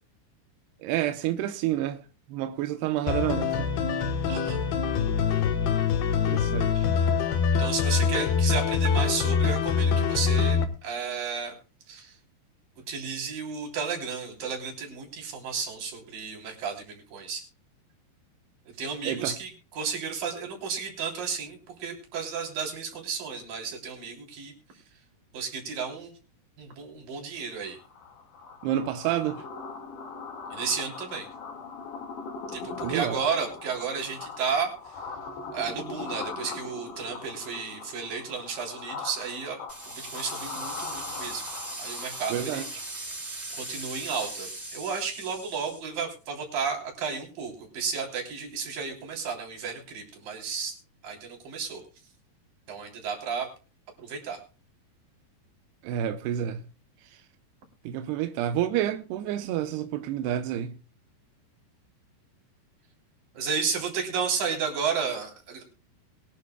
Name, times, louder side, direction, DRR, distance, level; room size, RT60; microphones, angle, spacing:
voice 1, 0.8-3.7 6.3-6.9 19.1-19.4 28.6-29.4 32.8-33.2 42.3-42.6 55.8-56.7 57.0-57.2 57.8-60.7, right 11 dB, 90° right, 2.9 m, -29 dB
sound 1, 3.1-10.6, left 6 dB, 80° left, 3.1 m, -24 dB
voice 2, 4.3-4.6 7.6-11.6 11.9-12.2 12.9-17.4 18.8-24.5 25.3-26.2 26.6-27.8 30.5-31.3 32.5-35.0 35.5-39.6 39.9-41.4 41.8-42.6 43.5-50.8 51.0-51.8 52.7-53.5 54.0-54.4 63.3-65.6, right 6 dB, 60° right, 4.9 m, -33 dB
sound 2, 27.6-42.9, left 4 dB, 55° left, 3.1 m, -40 dB
sound 3, 39.7-45.8, right 2 dB, 15° right, 3.2 m, -39 dB
22.0 x 12.5 x 2.2 m
omnidirectional pair, 4.7 m